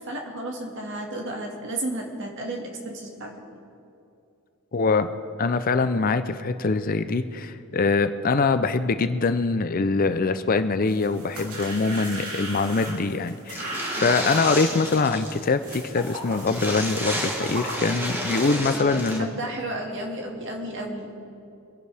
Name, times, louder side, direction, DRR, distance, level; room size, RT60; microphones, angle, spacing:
voice 1, 0.1-3.3 14.0-14.1 18.7-21.1, right 1 dB, 55° right, 1 dB, 2.0 m, -33 dB
voice 2, 4.7-5.1 5.4-19.3, left 4 dB, 40° left, 10 dB, 0.5 m, -23 dB
sound 1, 10.9-18.5, right 1 dB, 80° right, 3.1 m, -37 dB
sound 2, 13.5-15.4 15.7-15.8 16.1-16.2 16.4-19.2, equal, 10° right, 1.4 m, -31 dB
25.0 x 11.0 x 3.5 m, 2.6 s
head